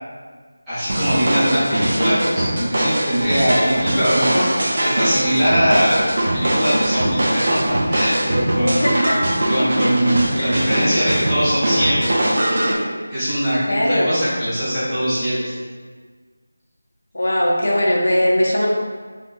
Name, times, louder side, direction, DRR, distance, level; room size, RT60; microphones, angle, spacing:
voice 1, 0.7-6.1 6.3-8.9 9.5-12.3 13.1-15.4, equal, 5° right, -18 dB, 1.0 m, -21 dB
sound 1, 0.9-12.7, right 1 dB, 45° right, 0.6 m, -21 dB
voice 2, 8.6-9.2 10.4-10.6 13.6-14.2 17.1-18.7, left 1 dB, 75° left, -3 dB, 0.8 m, -19 dB
3.9 x 3.4 x 2.6 m, 1.5 s
figure-of-eight pair, 175°, 0 cm